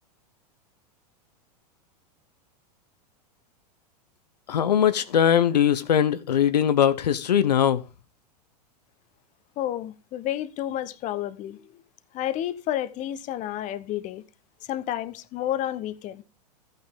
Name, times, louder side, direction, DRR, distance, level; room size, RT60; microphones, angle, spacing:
voice 1, 4.5-7.8, left 9 dB, 85° left, 0.8 m, -21 dB
voice 2, 9.6-11.8 12.1-14.2 14.7-16.2, left 12 dB, 35° left, 1.0 m, -30 dB
13.5 x 9.1 x 3.7 m
hypercardioid pair, 110°, 21 cm